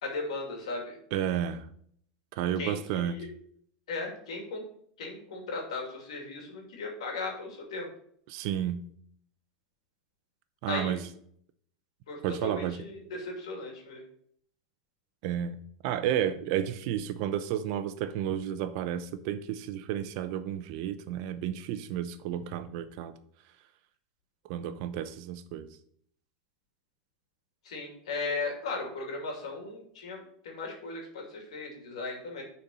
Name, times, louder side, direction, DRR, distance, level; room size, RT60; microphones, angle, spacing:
voice 1, 0.0-0.9 2.6-3.3 3.9-4.6 5.0-7.9 10.7-10.9 12.1-14.0 27.6-32.4, left 3 dB, 90° left, 2.4 m, -37 dB
voice 2, 1.1-1.7 2.4-3.3 8.3-8.9 10.6-11.1 12.2-12.8 15.2-23.1 24.4-25.7, right 10 dB, 60° right, 0.7 m, -32 dB
6.7 x 4.5 x 5.4 m
supercardioid pair, 130°, 3 cm